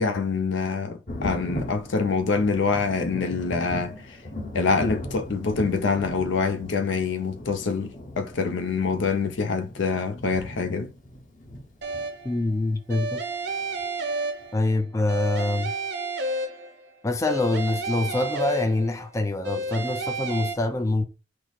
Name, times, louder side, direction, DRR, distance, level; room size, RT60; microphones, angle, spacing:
voice 1, 0.0-4.2 4.5-10.9, left 4 dB, 70° left, 0.5 m, -25 dB
Thunder, 1.1-12.5 13.8-13.9 14.4-14.5, left 1 dB, 40° left, 1.0 m, -38 dB
sound 1, 11.8-12.4 12.9-14.8 15.1-16.9 17.3-19.1 19.4-20.5, right 2 dB, 55° right, 0.7 m, -31 dB
voice 2, 12.2-13.2 14.5-15.7 17.0-21.1, left 2 dB, 15° left, 0.3 m, -25 dB
4.6 x 2.0 x 3.9 m
head